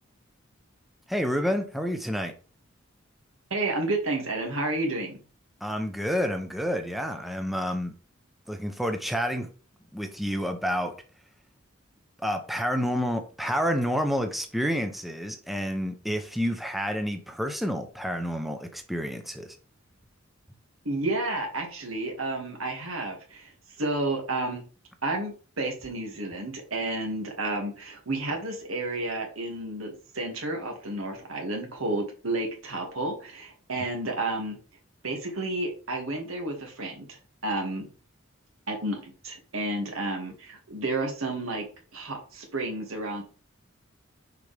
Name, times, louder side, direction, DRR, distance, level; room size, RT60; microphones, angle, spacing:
voice 1, 1.1-2.3 5.6-7.9 8.5-9.5 9.9-11.0 12.2-19.6, equal, ahead, 5 dB, 0.6 m, -29 dB
voice 2, 3.5-5.2 20.9-23.5 23.8-24.6 25.0-34.6 35.0-37.9 38.7-41.7 41.9-43.2, right 2 dB, 85° right, 1 dB, 2.0 m, -31 dB
6.6 x 4.8 x 3.4 m, 0.37 s
head